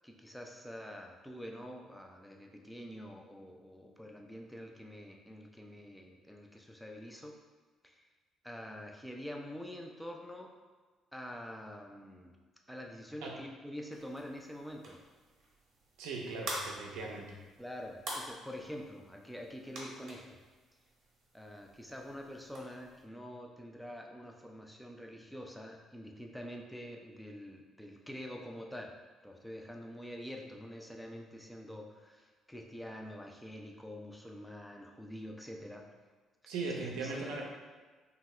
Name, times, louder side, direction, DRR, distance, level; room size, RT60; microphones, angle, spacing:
voice 1, 0.0-7.4 7.8-8.1 8.4-10.5 11.1-12.4 12.7-15.0 17.6-20.4 21.3-29.0 29.2-35.9 36.7-37.4, equal, 5° left, 1 dB, 0.4 m, -46 dB
sound 1, 13.9-23.0, right 1 dB, 60° right, 0.9 m, -47 dB
voice 2, 16.0-17.3 36.5-37.4, right 3 dB, 85° right, -1 dB, 0.5 m, -39 dB
2.7 x 2.3 x 3.1 m, 1.4 s
supercardioid pair, 75°, 0 cm